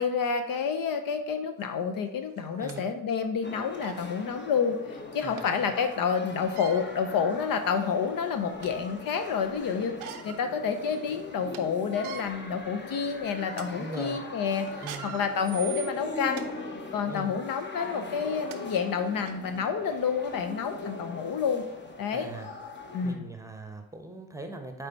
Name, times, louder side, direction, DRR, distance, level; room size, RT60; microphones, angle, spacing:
voice 1, 0.0-16.5 16.9-21.6 22.0-22.3 22.9-23.3, left 6 dB, 50° left, 8 dB, 0.7 m, -29 dB
sound 1, 1.6-1.7 2.4-2.8 3.4-3.5 3.8-4.0 5.4-5.5 6.4-6.8 7.6-7.7 8.2-8.9 9.8-10.4 10.9-11.0 11.3-11.6 11.9-12.2 12.9-13.1 13.5-13.7 14.7-16.5 17.1-17.3 18.1-18.2 18.5-18.6 19.3-19.4, right 10 dB, 85° right, 0.6 m, -42 dB
sound 2, 3.4-23.1, left 2 dB, 25° left, 1.1 m, -41 dB
voice 2, 5.2-5.7 13.8-14.3 14.8-15.2 17.1-17.4 22.1-22.5 23.0-24.9, right 2 dB, 5° right, 5 dB, 1.0 m, -40 dB
8.9 x 3.4 x 4.3 m, 0.92 s
hypercardioid pair, 45°, 42 cm